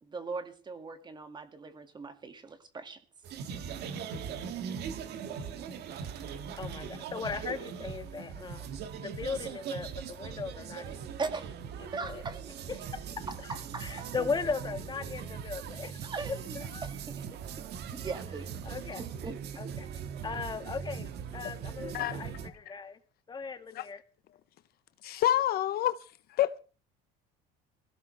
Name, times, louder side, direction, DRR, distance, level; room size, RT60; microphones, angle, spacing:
voice 1, 0.0-3.0 11.2-11.5 11.9-12.4 13.3-14.1 16.0-17.7 17.9-19.6, right 4 dB, 20° right, 1.9 m, -40 dB
sound 1, 3.2-22.5, right 7 dB, 55° right, 1.7 m, -40 dB
voice 2, 6.6-8.8 9.0-11.0 11.8-12.2 12.9-13.3 13.8-16.1 16.5-16.9 18.6-19.0 19.6-19.9 20.2-23.0 23.3-24.0, left 5 dB, 20° left, 1.5 m, -38 dB
voice 3, 25.0-26.0 26.4-26.6, left 12 dB, 50° left, 0.7 m, -27 dB
22.0 x 16.0 x 3.2 m
cardioid pair, 140°, 20 cm